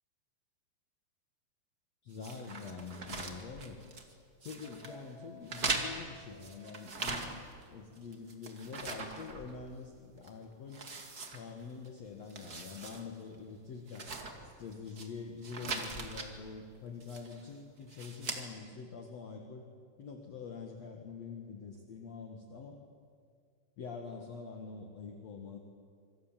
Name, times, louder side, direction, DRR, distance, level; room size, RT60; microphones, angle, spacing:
voice 1, 2.0-4.1 4.4-7.3 7.7-10.8 11.3-14.1 14.4-19.7 20.0-22.8 23.8-25.6, left 5 dB, 55° left, 3 dB, 1.9 m, -45 dB
sound 1, 2.2-4.1 4.4-4.9 5.5-7.6 7.9-9.9 10.2-10.3 10.7-11.9 12.2-13.0 13.3-13.4 13.9-15.1 15.4-16.3 17.0-17.4 17.9-18.4, right 3 dB, 60° right, 0.9 m, -40 dB
sound 2, 4.6-7.4, right 1 dB, 80° left, 8.5 m, -56 dB
27.0 x 24.5 x 7.5 m, 2.1 s
omnidirectional pair, 5.4 m